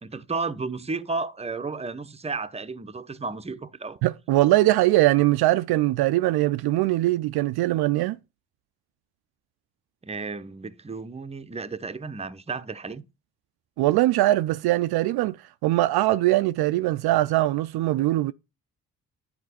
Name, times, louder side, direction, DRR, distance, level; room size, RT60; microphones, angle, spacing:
voice 1, 0.0-4.0 10.0-13.1, right 4 dB, 15° right, 0.8 m, -33 dB
voice 2, 4.0-8.2 13.8-15.4 15.6-18.3, right 16 dB, 65° right, 0.5 m, -21 dB
9.5 x 4.3 x 4.2 m
hypercardioid pair, 45°, 42 cm